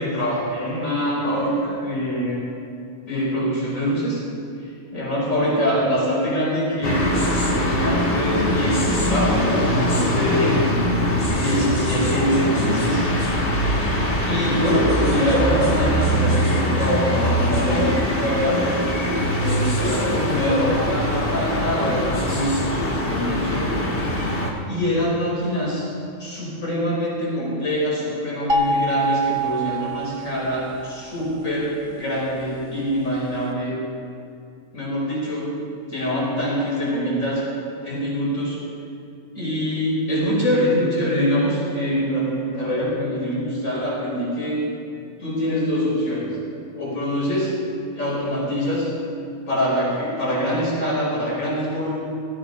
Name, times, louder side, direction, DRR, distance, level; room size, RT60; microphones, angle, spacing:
voice 1, 0.0-2.4 3.1-4.2 4.9-10.6 11.3-13.1 14.0-18.8 19.3-23.7 24.7-25.9 26.2-33.7 34.7-35.5 35.9-37.4 37.8-38.6 39.4-44.7 45.2-46.4 46.7-47.5 47.9-48.9 49.5-52.0, equal, 60° left, -5 dB, 5.3 m, -24 dB
sound 1, 6.8-24.5, equal, 40° left, 1.9 m, -22 dB
sound 2, 28.5-30.7, right 2 dB, 25° right, 1.2 m, -24 dB
17.0 x 14.5 x 5.4 m, 2.5 s
omnidirectional pair, 1.5 m